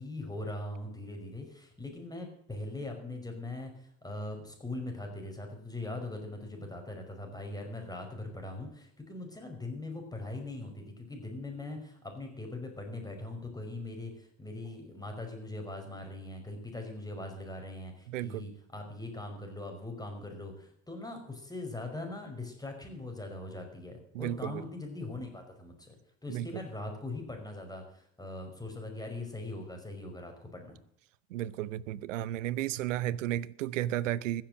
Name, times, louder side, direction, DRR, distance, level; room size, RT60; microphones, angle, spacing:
voice 1, 0.0-26.0 26.2-30.8, left 2 dB, 10° left, 5.4 m, -41 dB
voice 2, 18.1-18.5 24.1-24.6 26.3-26.5 31.3-34.4, right 13 dB, 85° right, 0.7 m, -33 dB
15.0 x 7.7 x 7.8 m
hypercardioid pair, 60°, 37 cm